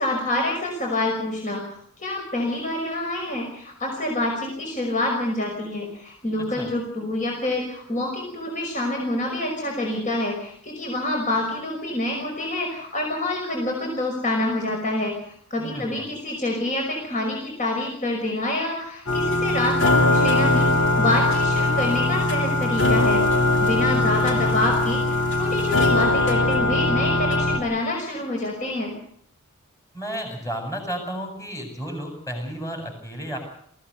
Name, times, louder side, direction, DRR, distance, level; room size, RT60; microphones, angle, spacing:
voice 1, 0.0-1.6 2.0-28.9, left 1 dB, 35° left, 0 dB, 5.7 m, -27 dB
voice 2, 15.6-16.1 24.3-24.6 29.9-33.4, equal, 15° left, 3 dB, 7.6 m, -32 dB
sound 1, 19.1-27.6, left 2 dB, 60° left, 3.5 m, -21 dB
23.0 x 16.0 x 8.1 m, 0.67 s
head